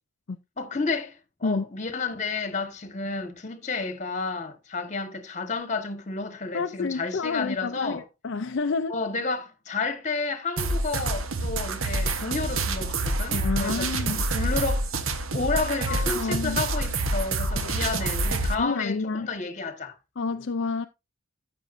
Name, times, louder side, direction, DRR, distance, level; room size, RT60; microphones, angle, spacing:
voice 1, 0.6-8.0 8.9-15.0 15.3-19.9, left 3 dB, 35° left, 1.3 m, -31 dB
voice 2, 6.5-9.0 13.3-14.2 15.8-16.6 17.5-17.8 18.6-19.3 20.2-20.8, left 4 dB, 55° left, 0.4 m, -29 dB
sound 1, 10.6-18.6, right 2 dB, 75° right, 1.1 m, -27 dB
12.0 x 7.7 x 2.6 m
head